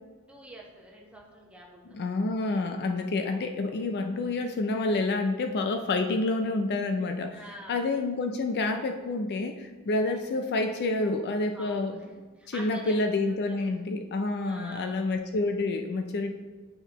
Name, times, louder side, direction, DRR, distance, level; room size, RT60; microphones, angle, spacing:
voice 1, 0.3-2.8 7.4-7.9 10.2-10.4 11.5-13.0 13.3-13.8 14.5-15.2, equal, 5° right, -3 dB, 1.0 m, -48 dB
voice 2, 1.9-7.4 7.7-12.0 12.5-16.3, left 2 dB, 50° left, 6 dB, 0.4 m, -28 dB
9.7 x 4.6 x 2.9 m, 1.4 s
head